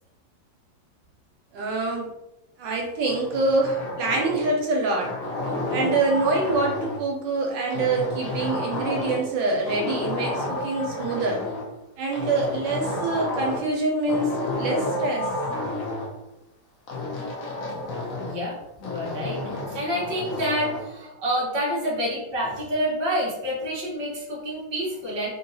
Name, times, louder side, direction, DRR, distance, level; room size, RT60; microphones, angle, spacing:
voice 1, 1.5-2.1 2.6-5.1 5.7-11.4 12.0-15.3, right 3 dB, 75° right, -1 dB, 1.3 m, -25 dB
sound 1, 3.1-4.6 5.0-7.1 7.7-9.3 9.6-11.7 12.1-13.7 14.1-16.1 16.9-18.4 18.8-20.9, left 2 dB, 60° left, 1.0 m, -30 dB
voice 2, 18.2-25.3, equal, 20° right, -6 dB, 0.8 m, -28 dB
3.4 x 2.7 x 2.6 m, 0.90 s
omnidirectional pair, 2.1 m